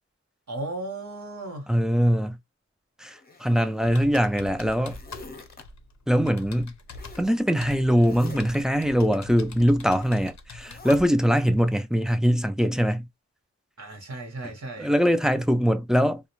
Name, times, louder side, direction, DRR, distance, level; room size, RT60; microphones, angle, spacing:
voice 1, 0.5-1.7 13.8-14.9, right 2 dB, 75° right, 0.9 m, -35 dB
voice 2, 1.7-2.4 3.0-5.0 6.1-6.7 7.2-13.1 14.8-16.2, equal, ahead, 0.3 m, -22 dB
Zipper (clothing), 3.1-4.1 4.5-5.6 6.9-7.3 7.9-8.6 9.9-10.2 10.6-11.0, left 2 dB, 30° left, 0.6 m, -46 dB
Computer keyboard, 3.8-11.1, left 3 dB, 70° left, 0.5 m, -44 dB
2.4 x 2.0 x 3.0 m
wide cardioid pair, 55°, 29 cm